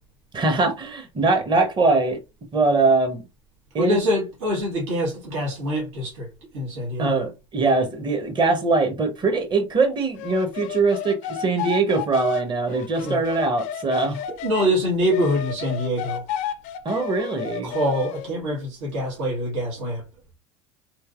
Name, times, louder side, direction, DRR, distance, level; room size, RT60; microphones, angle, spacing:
voice 1, 0.3-2.2 2.5-3.2 3.7-4.0 7.0-14.2 16.8-17.7, right 3 dB, 30° right, 1.0 m, -22 dB
voice 2, 3.8-6.3 6.5-7.2 13.0-13.2 14.4-16.2 17.6-20.0, equal, 70° right, 1.4 m, -25 dB
sound 1, 10.2-14.7 15.1-18.3, left 9 dB, 55° left, 0.4 m, -32 dB
3.1 x 2.8 x 2.4 m
hypercardioid pair, 80°, 16 cm